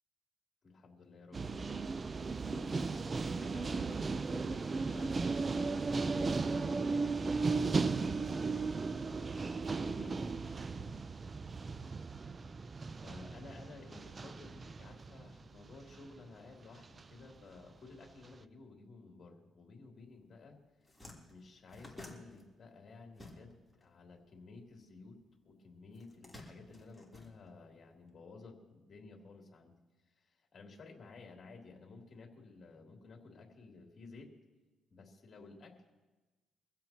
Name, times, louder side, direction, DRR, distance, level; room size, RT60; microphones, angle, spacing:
voice 1, 0.6-1.9 2.2-10.3 13.0-20.6 21.3-25.2 25.4-29.7 30.2-34.3 34.9-35.9, left 3 dB, 45° left, 0 dB, 3.3 m, -54 dB
sound 1, 1.3-16.3 17.0-17.3, right 4 dB, 35° right, 0.5 m, -36 dB
sound 2, 20.2-20.4 20.7-23.8 24.1-25.3 25.9-27.9, left 1 dB, 5° left, 3.6 m, -53 dB
24.0 x 15.5 x 3.0 m, 1.1 s
cardioid pair, 90°, 0 cm